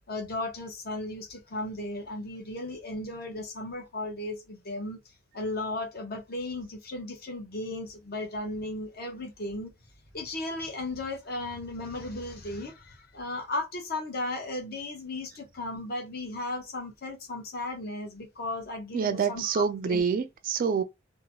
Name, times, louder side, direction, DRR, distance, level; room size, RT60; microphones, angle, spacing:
voice 1, 0.1-5.0 5.3-9.7 10.1-20.0, left 2 dB, 50° left, 1.0 m, -35 dB
voice 2, 18.9-20.8, right 6 dB, 45° right, 0.3 m, -27 dB
2.8 x 2.2 x 2.9 m
head